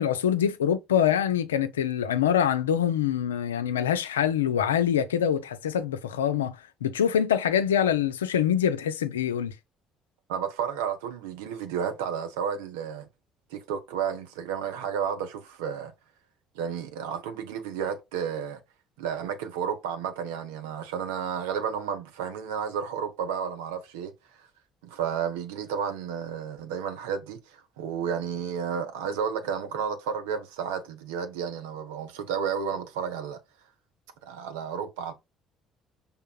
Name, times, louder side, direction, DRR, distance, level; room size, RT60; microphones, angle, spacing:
voice 1, 0.0-6.6 6.8-9.5, left 9 dB, 85° left, 0.4 m, -25 dB
voice 2, 10.3-13.1 13.5-15.9 16.5-18.6 19.0-24.1 24.4-24.5 24.8-33.4 34.2-35.1, right 7 dB, 80° right, 0.8 m, -32 dB
5.5 x 3.5 x 2.3 m
hypercardioid pair, 50°, 0 cm